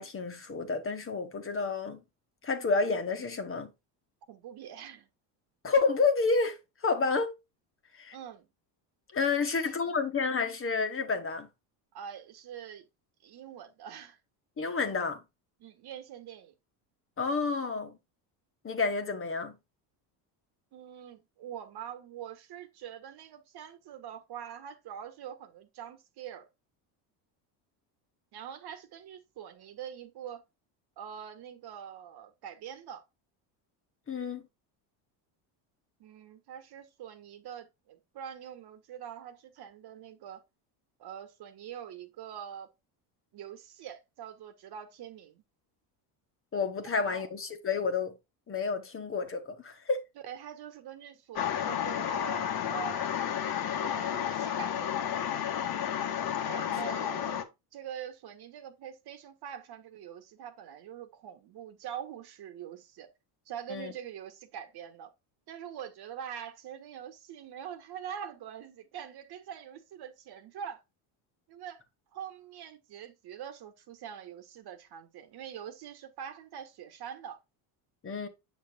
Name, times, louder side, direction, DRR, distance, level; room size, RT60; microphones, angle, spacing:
voice 1, 0.0-2.0 2.4-3.7 5.6-7.4 7.9-8.2 9.1-11.5 14.6-15.2 17.2-18.0 18.6-19.5 34.1-34.4 46.5-48.2 48.5-50.0 56.7-56.8 63.7-63.9 78.0-78.3, left 4 dB, 30° left, 1.4 m, -30 dB
voice 2, 4.3-5.1 8.1-8.5 9.5-9.9 11.9-12.9 13.2-14.2 15.6-16.5 20.7-26.5 28.3-30.4 31.0-33.0 36.0-40.4 41.0-42.7 43.3-45.4 47.1-47.3 50.2-53.0 53.8-55.1 56.4-63.1 63.5-65.1 65.5-70.8 71.5-71.8 72.1-77.4, right 9 dB, 55° right, 1.5 m, -44 dB
sound 1, 51.4-57.4, left 9 dB, 50° left, 1.4 m, -31 dB
8.0 x 6.4 x 2.3 m
supercardioid pair, 105°, 46 cm